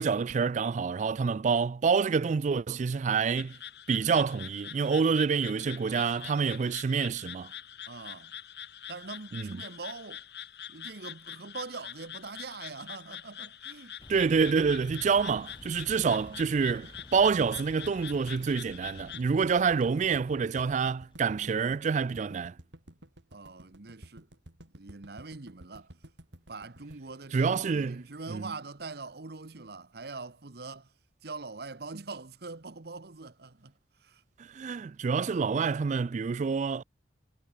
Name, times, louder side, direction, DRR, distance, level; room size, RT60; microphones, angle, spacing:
voice 1, 0.0-3.6 3.9-7.5 9.3-9.6 14.1-22.5 27.3-28.0 28.3-28.5 34.5-36.8, right 5 dB, 45° right, 0.3 m, -27 dB
sound 1, 3.4-19.2, left 10 dB, 65° left, 5.0 m, -45 dB
voice 2, 7.9-8.3 8.9-10.2 10.7-14.0 23.3-24.3 24.8-25.9 26.5-30.9 31.2-33.7 34.0-34.2, right 3 dB, 60° right, 1.1 m, -43 dB
sound 2, 14.0-21.2, left 1 dB, 30° left, 2.1 m, -52 dB
sound 3, 16.0-28.1, right 1 dB, 90° right, 4.4 m, -52 dB
head